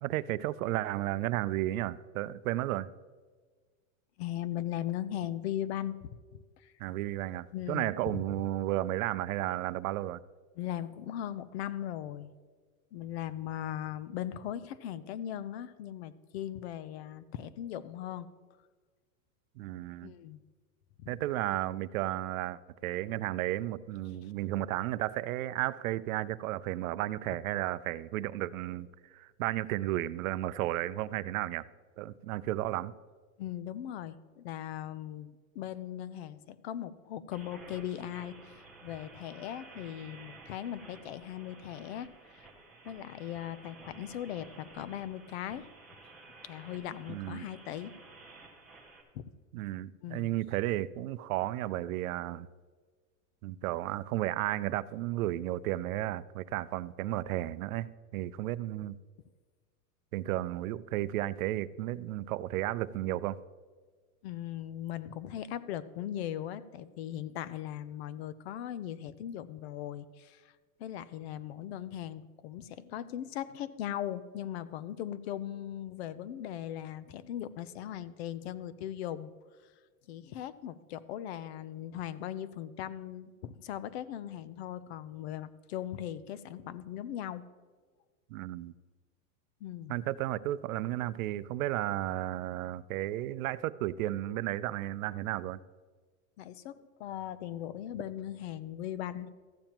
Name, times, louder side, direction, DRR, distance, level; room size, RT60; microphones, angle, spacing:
voice 1, 0.0-2.9 6.8-10.2 19.6-20.1 21.1-28.9 29.1-31.6 32.0-32.9 47.1-47.4 49.5-52.5 53.4-59.0 60.1-63.4 88.3-88.7 89.9-95.6, right 15 dB, 85° right, 0.5 m, -33 dB
voice 2, 4.2-6.1 6.6-6.7 7.5-8.2 10.6-12.3 12.9-18.3 20.0-20.4 21.0-21.1 24.2-24.3 27.3-27.4 33.4-42.1 42.3-42.5 42.8-45.7 46.4-47.9 49.1-49.2 50.0-50.3 64.2-70.5 70.8-79.3 80.1-87.4 89.6-90.0 96.4-99.3, left 11 dB, 50° left, 0.5 m, -39 dB
sound 1, 37.3-49.0, right 3 dB, ahead, 0.4 m, -53 dB
14.0 x 8.8 x 2.9 m
supercardioid pair, 175°, 41 cm